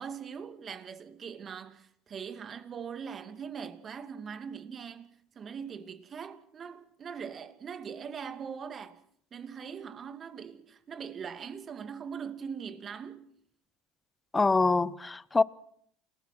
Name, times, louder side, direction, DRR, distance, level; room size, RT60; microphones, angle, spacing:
voice 1, 0.0-9.0 9.3-13.2, right 7 dB, 40° right, 2.4 m, -41 dB
voice 2, 14.3-15.4, left 3 dB, 20° left, 0.9 m, -25 dB
29.0 x 19.0 x 6.2 m
hypercardioid pair, 85°, 0 cm